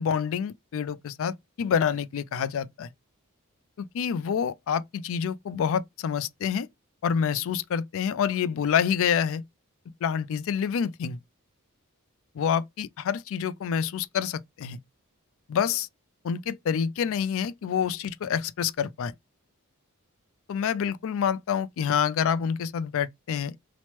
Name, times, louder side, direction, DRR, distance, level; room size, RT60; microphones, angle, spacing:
voice 1, 0.0-2.9 3.8-6.7 7.0-9.4 10.0-11.2 12.3-14.8 15.5-15.9 16.2-19.1 20.5-23.6, left 7 dB, 65° left, 0.3 m, -27 dB
3.0 x 2.1 x 2.9 m
head